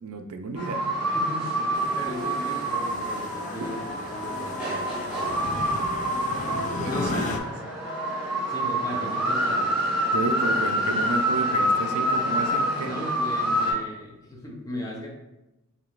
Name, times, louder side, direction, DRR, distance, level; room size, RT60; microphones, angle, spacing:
voice 1, 0.0-0.9 6.8-7.2 8.9-9.1 10.1-12.9, right 3 dB, 85° right, 6 dB, 0.4 m, -31 dB
sound 1, 0.5-13.7, right 1 dB, 5° right, 1.1 m, -27 dB
voice 2, 1.1-5.6 6.8-7.4 8.5-9.7 12.8-15.1, left 1 dB, 15° left, -3 dB, 0.7 m, -37 dB
sound 2, 1.7-7.4, left 2 dB, 35° left, 0.3 m, -34 dB
4.8 x 2.9 x 2.4 m, 0.97 s
head